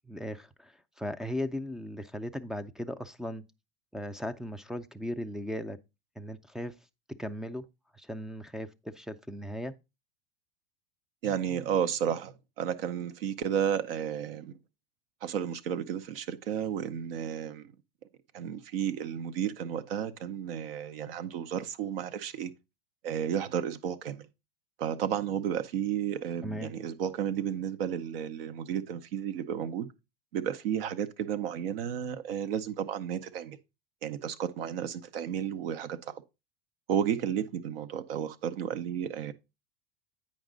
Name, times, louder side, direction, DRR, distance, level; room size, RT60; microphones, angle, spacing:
voice 1, 0.1-3.4 3.9-5.8 6.2-6.8 7.2-7.7 7.9-9.7 26.4-26.7, equal, ahead, 0.4 m, -37 dB
voice 2, 11.2-14.6 15.2-17.7 18.3-22.5 23.0-24.3 24.8-29.9 30.3-33.6 34.0-36.2 36.9-39.3, right 9 dB, 70° right, 0.8 m, -32 dB
8.8 x 5.2 x 3.8 m
hypercardioid pair, 100°, 30 cm